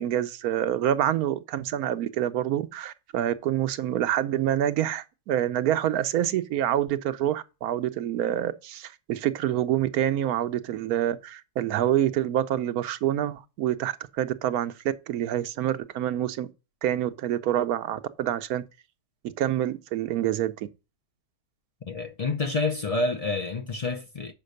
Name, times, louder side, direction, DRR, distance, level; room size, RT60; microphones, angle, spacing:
voice 1, 0.0-14.7 15.1-16.5 16.8-18.6 19.2-20.7, right 11 dB, 85° right, 1.1 m, -27 dB
voice 2, 21.9-24.3, left 3 dB, 45° left, 0.4 m, -28 dB
6.6 x 5.2 x 6.5 m
omnidirectional pair, 1.5 m